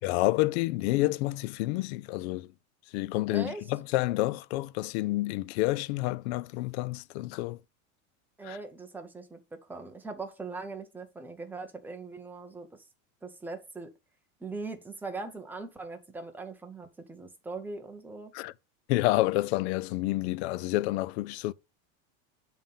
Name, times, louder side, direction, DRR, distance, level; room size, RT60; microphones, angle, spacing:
voice 1, 0.0-2.5 2.9-7.6 8.4-8.6 18.3-18.5 18.9-21.5, left 18 dB, 55° left, 0.4 m, -29 dB
voice 2, 3.3-3.7 8.4-9.4 9.7-12.7 13.2-13.9 14.4-18.3, right 3 dB, 5° right, 0.6 m, -40 dB
7.0 x 3.8 x 5.6 m
supercardioid pair, 165°, 40 cm